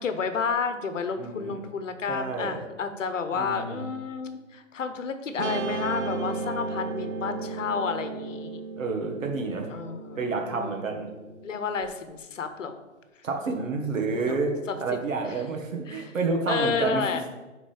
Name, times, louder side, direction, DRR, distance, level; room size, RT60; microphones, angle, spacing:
voice 1, 0.0-8.6 9.7-10.2 10.5-10.9 11.4-12.8 14.3-14.4 14.7-14.8 15.3-15.4 15.9-16.1 16.5-17.3, left 5 dB, 70° left, 9 dB, 0.9 m, -31 dB
voice 2, 1.2-1.6 2.1-2.6 3.3-3.8 8.8-9.7 10.2-11.1 13.2-14.5 14.8-17.2, right 4 dB, 80° right, 2 dB, 1.6 m, -29 dB
Guitar, 5.4-11.8, right 3 dB, 65° right, 1.0 m, -35 dB
8.9 x 4.0 x 3.4 m, 1.2 s
hypercardioid pair, 150°, 39 cm